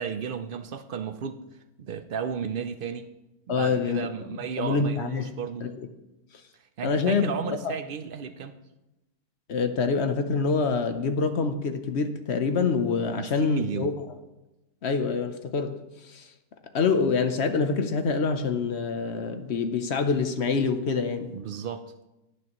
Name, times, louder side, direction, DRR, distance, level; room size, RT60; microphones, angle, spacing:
voice 1, 0.0-1.4 1.8-3.1 3.5-5.7 6.8-8.5 13.1-13.9 21.3-21.9, right 7 dB, 80° right, 10 dB, 0.4 m, -33 dB
voice 2, 3.5-4.1 4.6-5.3 5.6-5.7 6.8-7.3 9.5-13.9 14.8-15.8 16.0-16.3 16.7-21.3, left 5 dB, 55° left, 8 dB, 0.9 m, -26 dB
17.0 x 9.6 x 3.0 m, 1.0 s
omnidirectional pair, 1.6 m